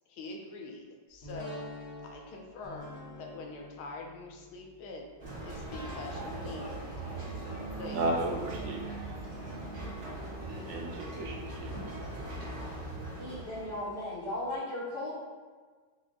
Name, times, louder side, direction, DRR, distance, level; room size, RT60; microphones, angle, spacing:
voice 1, 0.1-1.6 2.0-2.9 3.2-5.1 5.4-6.8 7.8-8.0, left 2 dB, 80° left, 0 dB, 1.5 m, -44 dB
sound 1, 1.2-14.1 14.5-14.6, left 1 dB, 40° left, 0.9 m, -49 dB
sound 2, 5.2-14.0, right 2 dB, 40° right, 1.1 m, -40 dB
voice 2, 7.9-8.8 10.7-11.7, right 2 dB, 80° right, 0 dB, 1.4 m, -33 dB
voice 3, 13.2-15.1, left 1 dB, 60° left, -9 dB, 1.2 m, -36 dB
4.7 x 2.2 x 3.7 m, 1.5 s
omnidirectional pair, 2.4 m